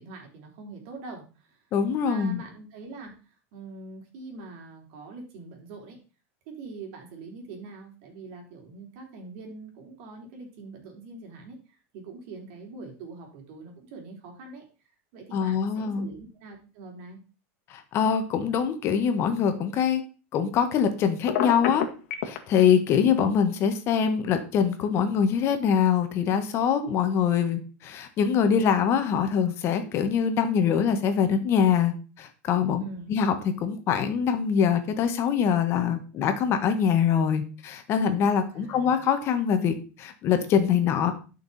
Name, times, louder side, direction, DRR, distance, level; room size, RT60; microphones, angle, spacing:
voice 1, 0.0-1.6 2.0-6.0 6.6-14.6 15.1-17.2 32.8-33.1 38.5-39.0, right 3 dB, 55° right, 1 dB, 4.1 m, -43 dB
voice 2, 1.7-2.4 15.3-16.1 17.7-20.0 20.3-21.9 22.2-32.8 33.1-41.1, left 7 dB, 35° left, 8 dB, 1.5 m, -24 dB
Telephone, 21.3-22.4, left 10 dB, 65° left, 1.8 m, -26 dB
11.5 x 6.1 x 4.3 m, 0.35 s
supercardioid pair, 150°, 7 cm